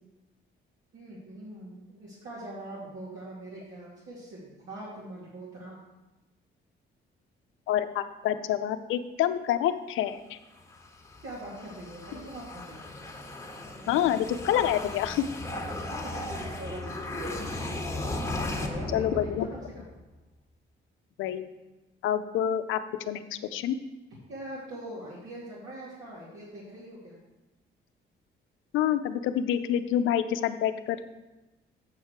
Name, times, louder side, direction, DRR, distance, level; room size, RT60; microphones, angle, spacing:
voice 1, 0.9-5.8 11.2-12.8 15.9-19.8 24.3-27.2, right 1 dB, 65° right, -8 dB, 2.5 m, -42 dB
voice 2, 7.7-10.4 13.9-15.2 18.9-19.5 21.2-21.5 22.0-22.8 23.1-23.8 28.7-31.0, left 10 dB, 85° left, 11 dB, 0.6 m, -27 dB
sound 1, 10.6-19.9, left 2 dB, 15° left, 1.4 m, -36 dB
8.2 x 6.5 x 4.7 m, 1.0 s
cardioid pair, 90°, 20 cm